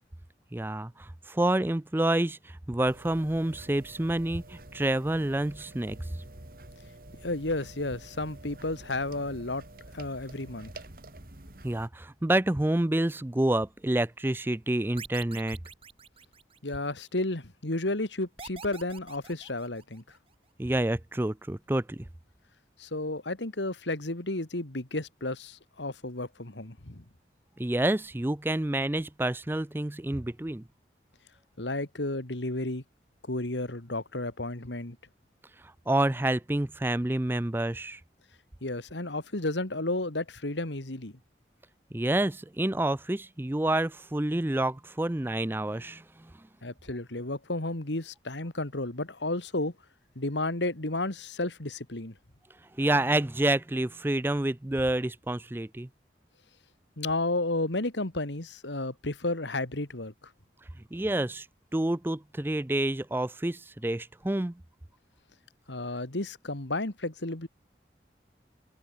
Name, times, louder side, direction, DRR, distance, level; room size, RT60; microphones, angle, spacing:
voice 1, 0.5-6.0 11.6-15.6 20.6-22.0 27.6-30.6 35.9-38.0 41.9-46.3 52.8-55.9 60.9-61.5 61.7-64.6, right 1 dB, 10° right, 0.5 m, -28 dB
sound 1, 2.8-11.9, right 1 dB, 55° right, 2.2 m, -48 dB
voice 2, 7.2-9.6 9.9-10.7 16.6-20.0 22.8-27.0 31.6-32.8 33.3-35.0 38.6-41.1 46.6-49.7 50.2-52.1 57.0-60.1 65.7-67.5, left 2 dB, 90° left, 2.5 m, -32 dB
sound 2, 15.0-16.9 18.4-20.2, right 5 dB, 30° right, 1.5 m, -46 dB
head